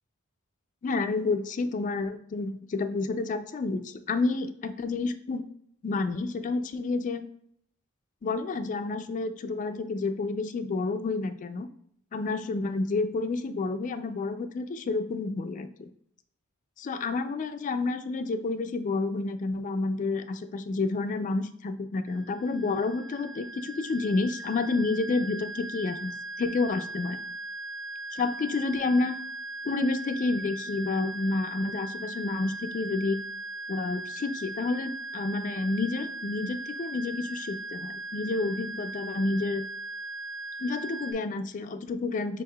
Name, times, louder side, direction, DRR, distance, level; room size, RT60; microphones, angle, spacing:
voice 1, 0.8-5.5 5.8-7.2 8.2-11.7 12.1-15.9 16.8-27.2 28.1-29.2 29.6-33.2 33.7-39.6 40.6-42.4, left 3 dB, 35° left, 9 dB, 0.3 m, -29 dB
sound 1, 22.1-41.1, right 2 dB, 50° right, 0.9 m, -39 dB
5.3 x 4.0 x 2.2 m, 0.70 s
head